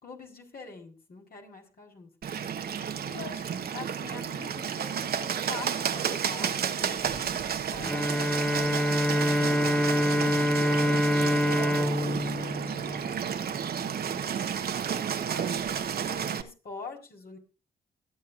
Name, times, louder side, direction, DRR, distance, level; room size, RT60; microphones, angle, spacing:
voice 1, 0.0-2.4 2.7-11.5 11.7-14.6 14.9-15.7 16.1-17.4, left 4 dB, 60° left, 0 dB, 4.3 m, -46 dB
Bird, 2.2-16.4, right 7 dB, 65° right, 1.2 m, -31 dB
Bowed string instrument, 7.8-13.5, left 1 dB, 5° left, 0.7 m, -26 dB
23.5 x 8.5 x 2.6 m, 0.32 s
hypercardioid pair, 45°, 17 cm